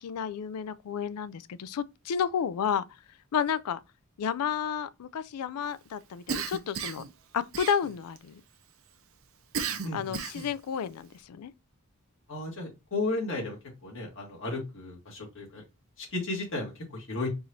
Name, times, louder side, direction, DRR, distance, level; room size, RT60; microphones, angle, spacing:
voice 1, 0.0-2.9 3.3-3.8 4.2-7.0 7.3-8.4 9.9-11.5, left 7 dB, 85° left, 0.4 m, -31 dB
Cough, 6.3-7.1 7.5-8.2 9.5-10.6, right 6 dB, 65° right, 0.6 m, -34 dB
voice 2, 9.8-10.1 12.3-13.6 13.8-15.6 16.0-17.3, left 2 dB, 60° left, 1.9 m, -34 dB
4.7 x 2.6 x 4.2 m
head